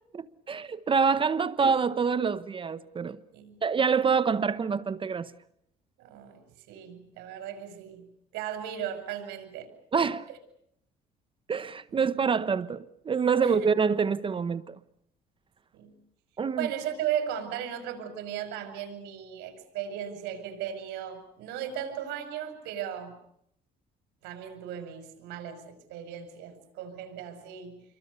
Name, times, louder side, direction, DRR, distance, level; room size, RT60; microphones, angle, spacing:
voice 1, 0.1-3.2 3.6-5.3 9.9-10.3 11.5-14.8 16.4-16.7, right 5 dB, 30° right, 0.9 m, -26 dB
voice 2, 6.0-8.1 8.3-9.7 13.4-13.7 15.7-15.9 16.6-23.2 24.2-27.8, right 9 dB, 90° right, 5.8 m, -36 dB
28.5 x 23.5 x 6.9 m
cardioid pair, 110°, 17 cm